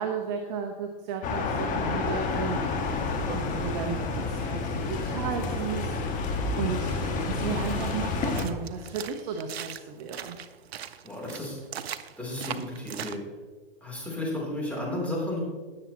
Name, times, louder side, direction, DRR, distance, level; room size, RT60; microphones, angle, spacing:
voice 1, 0.0-6.3 6.6-10.4, right 6 dB, 45° right, 4 dB, 1.0 m, -34 dB
sound 1, 1.2-8.5, left 4 dB, 25° left, 1.6 m, -29 dB
sound 2, 6.8-13.2, right 9 dB, 85° right, 0.7 m, -40 dB
voice 2, 11.0-11.6 12.2-13.2 13.8-15.4, left 1 dB, 5° left, -5 dB, 3.5 m, -33 dB
17.5 x 7.2 x 3.0 m, 1.4 s
hypercardioid pair, 140°, 30 cm